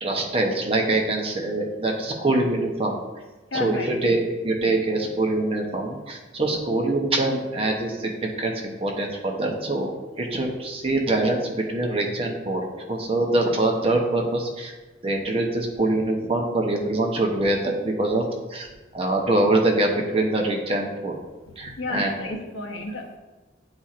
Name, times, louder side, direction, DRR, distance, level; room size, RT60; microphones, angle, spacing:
voice 1, 0.0-2.9 3.5-9.9 10.2-12.6 12.9-14.7 15.0-18.2 18.5-18.7 18.9-21.2 21.6-22.1, right 2 dB, 30° right, 1 dB, 0.8 m, -24 dB
voice 2, 3.5-4.0 21.4-23.2, left 2 dB, 80° left, 1 dB, 1.0 m, -32 dB
9.3 x 4.2 x 2.5 m, 1.2 s
head